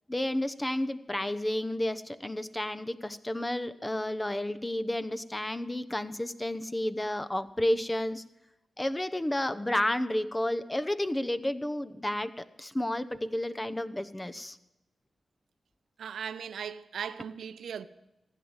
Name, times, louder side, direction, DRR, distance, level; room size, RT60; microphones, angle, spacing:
voice 1, 0.1-8.2 8.8-14.6, left 1 dB, 20° left, 0.9 m, -31 dB
voice 2, 16.0-17.9, right 7 dB, 85° right, 0.6 m, -38 dB
15.5 x 9.6 x 8.1 m
cardioid pair, 45°, 0 cm